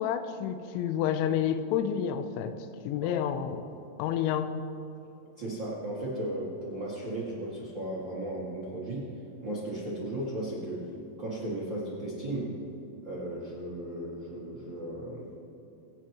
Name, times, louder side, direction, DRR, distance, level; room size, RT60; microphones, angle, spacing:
voice 1, 0.0-2.6 2.9-3.6 4.0-4.5, left 9 dB, 80° left, 9 dB, 2.7 m, -29 dB
voice 2, 5.4-9.1 9.4-10.9 11.2-12.6 13.0-15.3, right 1 dB, 65° right, -7 dB, 1.1 m, -35 dB
26.0 x 9.3 x 3.0 m, 2.9 s
omnidirectional pair, 5.9 m